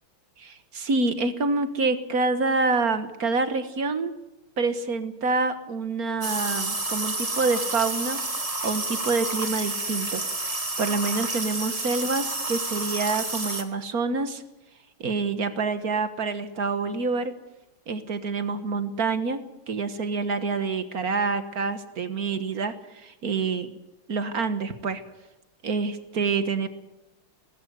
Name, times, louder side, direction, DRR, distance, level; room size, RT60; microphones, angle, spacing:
voice 1, 0.4-4.1 4.6-8.2 8.6-10.2 10.5-14.4 15.0-17.3 17.9-19.4 19.7-23.8 24.1-25.0 25.6-26.7, right 4 dB, 45° right, 10 dB, 1.7 m, -27 dB
sound 1, 6.2-13.6, right 2 dB, 15° right, 1.7 m, -30 dB
19.5 x 16.0 x 9.6 m, 0.97 s
omnidirectional pair, 2.4 m